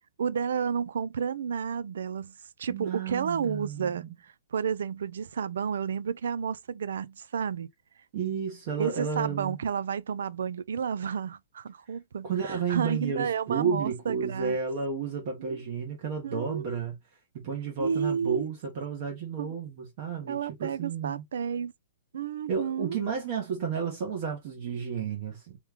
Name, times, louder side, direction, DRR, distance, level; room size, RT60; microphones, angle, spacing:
voice 1, 0.2-7.7 8.7-14.6 15.5-15.6 16.2-16.7 17.8-18.5 19.4-19.5 20.3-21.7 22.1-23.0, right 7 dB, 75° right, 0.4 m, -31 dB
voice 2, 2.7-4.1 8.1-9.6 12.2-16.9 17.3-21.2 22.5-25.6, right 6 dB, 35° right, 1.1 m, -32 dB
3.6 x 3.1 x 3.4 m
hypercardioid pair, 180°, 0 cm